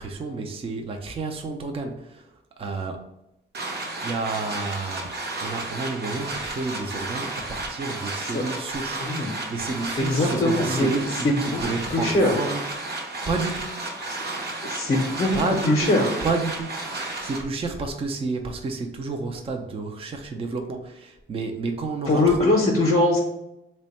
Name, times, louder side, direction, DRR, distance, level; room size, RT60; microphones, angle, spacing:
voice 1, 0.0-3.1 4.0-12.6 13.3-13.7 15.3-15.9 16.2-22.5, right 3 dB, 30° right, 4 dB, 0.4 m, -30 dB
sound 1, 3.5-17.4, right 2 dB, 50° right, 0.8 m, -32 dB
voice 2, 10.1-10.9 11.2-11.6 11.9-12.3 14.6-15.4 15.6-16.1 22.1-23.2, left 2 dB, 35° left, -1 dB, 0.6 m, -21 dB
3.4 x 2.2 x 4.0 m, 0.88 s
wide cardioid pair, 140°, 21 cm